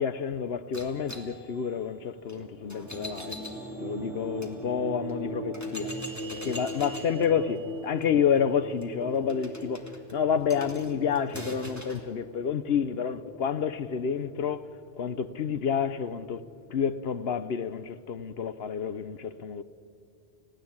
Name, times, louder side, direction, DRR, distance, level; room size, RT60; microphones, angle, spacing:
voice 1, 0.0-3.4 3.8-5.9 6.4-16.4 16.7-19.6, left 7 dB, 65° left, 1.0 m, -29 dB
sound 1, 0.7-4.5 5.1-5.2 5.5-12.1, equal, 15° left, 2.2 m, -44 dB
sound 2, 2.6-17.5, right 1 dB, ahead, 4.3 m, -41 dB
30.0 x 17.0 x 8.7 m
omnidirectional pair, 1.2 m